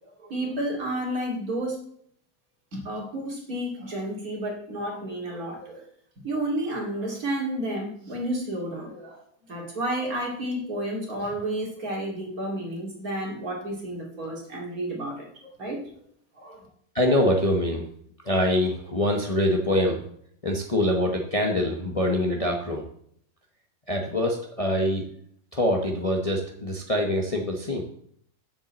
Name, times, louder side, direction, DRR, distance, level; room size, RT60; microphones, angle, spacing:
voice 1, 0.0-1.8 2.7-5.9 6.2-15.3 15.6-15.8 16.4-16.7, right 1 dB, 60° right, -2 dB, 2.9 m, -31 dB
voice 2, 16.9-17.8 18.2-20.0 20.4-22.9 23.9-25.0 25.5-27.8, left 1 dB, 25° left, 1 dB, 0.9 m, -24 dB
7.2 x 5.4 x 7.4 m, 0.65 s
omnidirectional pair, 1.7 m